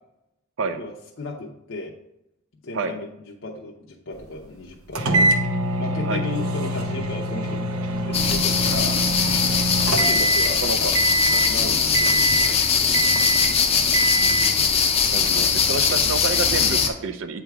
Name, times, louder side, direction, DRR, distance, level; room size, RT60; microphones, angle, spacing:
voice 1, 0.8-2.0 2.6-5.3 5.8-9.0 9.9-10.9 11.3-13.0, left 2 dB, 65° left, -1 dB, 0.7 m, -35 dB
sound 1, 4.9-10.6 10.9-11.5 11.9-12.6 12.9-13.5 13.9-14.6, right 1 dB, 90° right, 0.8 m, -24 dB
sound 2, 8.1-16.9, left 6 dB, 30° left, 0.5 m, -21 dB
voice 2, 10.0-10.3 10.6-10.9 15.1-17.4, right 3 dB, 65° right, 9 dB, 0.5 m, -28 dB
8.2 x 3.5 x 4.7 m, 0.83 s
head